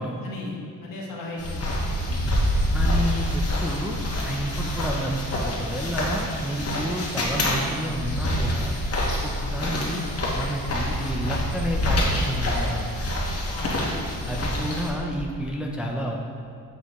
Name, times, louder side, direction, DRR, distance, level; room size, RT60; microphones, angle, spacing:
voice 1, 0.0-2.2 4.6-4.8 9.4-9.5 13.5-13.8 14.6-14.8, left 1 dB, 65° left, -3 dB, 1.5 m, -37 dB
sound 1, 1.4-14.9, left 1 dB, 40° left, 1.3 m, -26 dB
voice 2, 2.7-4.0 4.2-8.7 9.2-10.0 10.3-12.9 14.3-16.2, right 1 dB, 5° right, 0 dB, 0.5 m, -30 dB
7.2 x 6.6 x 3.0 m, 2.3 s
cardioid pair, 115°, 36 cm